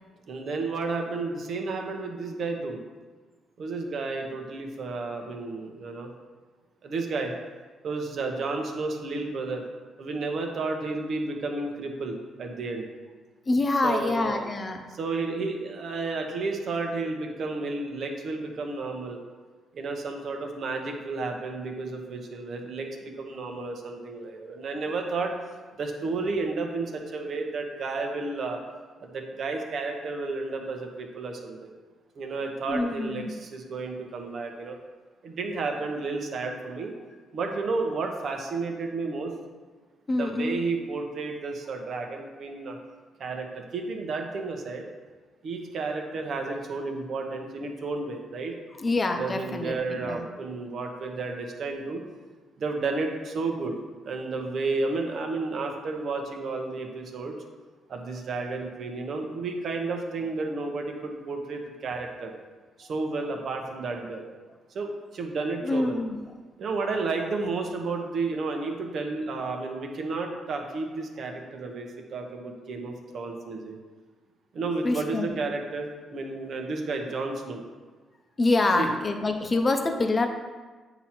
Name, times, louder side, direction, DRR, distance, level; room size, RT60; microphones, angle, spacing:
voice 1, 0.3-2.8 3.6-6.1 6.8-7.3 7.8-9.6 10.0-12.9 13.8-14.5 14.9-19.2 19.7-25.3 25.8-28.6 29.0-31.7 32.2-34.8 35.2-36.9 37.3-39.3 40.2-42.8 43.2-44.9 45.4-48.5 49.2-52.0 52.6-53.8 54.0-57.3 57.9-62.3 62.8-64.3 64.7-66.0 66.6-73.8 74.5-77.6 78.8-78.9, right 3 dB, 60° right, 3 dB, 1.0 m, -32 dB
voice 2, 13.5-14.8 32.7-33.3 40.1-40.6 48.8-50.2 65.6-66.2 74.8-75.3 78.4-80.3, left 2 dB, 30° left, 5 dB, 0.8 m, -26 dB
8.3 x 2.9 x 5.9 m, 1.3 s
cardioid pair, 90°, 0 cm